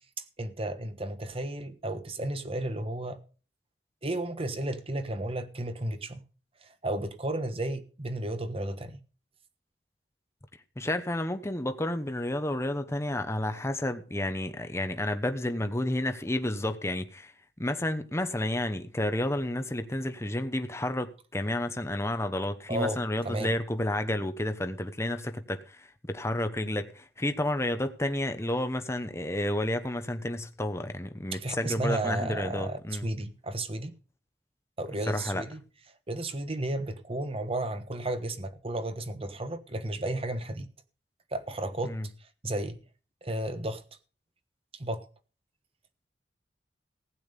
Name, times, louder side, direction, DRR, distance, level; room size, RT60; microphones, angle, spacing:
voice 1, 0.4-3.2 4.0-6.2 6.6-9.0 22.7-23.0 23.2-23.5 31.3-33.9 34.8-35.6 36.1-40.7 41.3-42.0 42.4-42.8 43.2-43.8 44.7-45.1, right 1 dB, 35° right, 1.3 m, -33 dB
voice 2, 10.8-33.1 35.1-35.4 41.8-42.1, left 1 dB, 15° left, 0.9 m, -31 dB
15.5 x 8.7 x 5.3 m
head